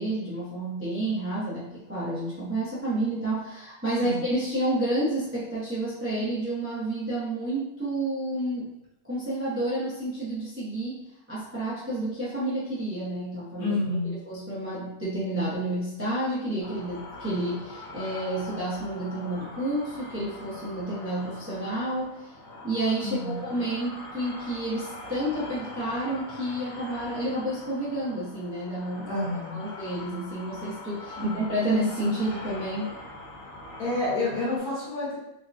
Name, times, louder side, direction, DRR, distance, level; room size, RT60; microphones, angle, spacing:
voice 1, 0.0-8.7 9.0-11.0 11.3-13.7 14.3-22.1 22.6-29.1 29.5-32.9, right 1 dB, 15° right, -10 dB, 0.5 m, -30 dB
voice 2, 13.6-14.1 23.0-23.5 29.1-29.6 31.2-31.4 33.8-35.2, left 2 dB, 60° left, -7 dB, 1.6 m, -29 dB
sound 1, 16.6-34.6, left 2 dB, 35° left, 1.1 m, -43 dB
3.5 x 2.2 x 2.5 m, 0.86 s
omnidirectional pair, 1.8 m